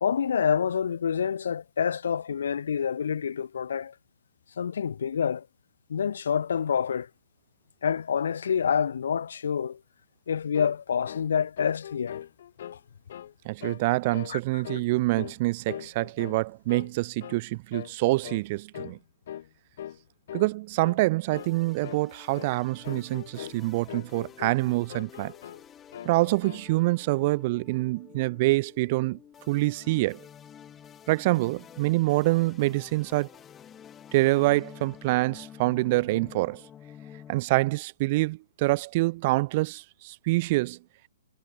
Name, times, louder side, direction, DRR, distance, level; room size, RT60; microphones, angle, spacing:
voice 1, 0.0-3.9 4.6-5.5 5.9-7.1 7.8-9.8 10.3-12.2 12.7-12.8 14.3-14.6, left 7 dB, 75° left, 0.4 m, -27 dB
sound 1, 10.5-10.8 11.1-11.3 11.6-12.8 13.1-13.3 13.6-13.9 14.1-14.4 14.6-15.4 15.7-16.4 16.7-16.9 17.2-17.4 17.7-17.9 18.2-18.5 18.7-19.0 19.3-19.5 19.8-20.0 20.3-20.5 20.8-21.0 21.3-21.6 21.8-22.1 22.3-22.5 22.8-23.6 23.9-24.6 24.9-25.6 25.9-26.7, left 10 dB, 60° left, 0.8 m, -41 dB
voice 2, 13.5-19.0 20.3-25.3 26.0-29.2 29.5-30.2 31.1-33.3 34.1-36.6 37.3-40.8, right 21 dB, 40° right, 0.4 m, -26 dB
sound 2, 21.3-37.4, left 9 dB, 15° left, 2.0 m, -50 dB
hypercardioid pair, 150°, 0 cm